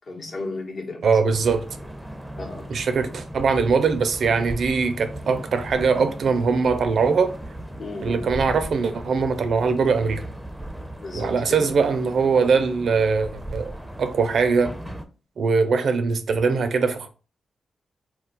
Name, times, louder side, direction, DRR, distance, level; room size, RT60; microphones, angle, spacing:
voice 1, 0.1-1.3 2.4-2.7 7.8-8.3 11.0-11.8, left 2 dB, 60° left, 0.9 m, -34 dB
voice 2, 1.0-1.7 2.7-7.3 8.0-10.3 11.1-13.7 14.0-14.8 15.4-17.1, right 5 dB, 70° right, 0.4 m, -21 dB
sound 1, 1.3-15.0, right 1 dB, 5° right, 0.5 m, -37 dB
2.3 x 2.2 x 3.8 m
cardioid pair, 80°, 0 cm